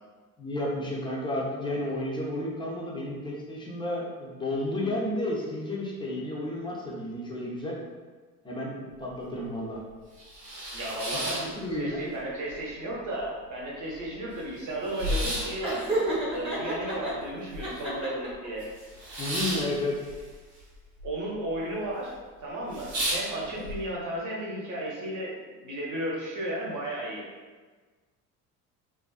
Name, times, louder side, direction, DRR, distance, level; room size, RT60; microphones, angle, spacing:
voice 1, 0.4-7.8 8.4-9.8 11.2-12.0 19.2-20.0 23.5-23.7, left 1 dB, 10° left, -4 dB, 0.5 m, -32 dB
sound 1, 8.9-9.0 9.4-9.5 10.0-12.2 12.5-13.2 13.6-13.7 13.9-18.0 18.3-21.1 21.3-21.9 22.3-22.4 22.7-23.8, right 1 dB, 85° right, 0.9 m, -34 dB
voice 2, 10.7-15.9 16.3-18.6 21.0-22.1 22.4-27.2, right 1 dB, 40° right, -4 dB, 0.9 m, -34 dB
Laughter, 15.6-17.1 17.6-18.5, right 1 dB, 10° right, 0.9 m, -30 dB
2.3 x 2.3 x 2.3 m, 1.4 s
figure-of-eight pair, 60°, 48 cm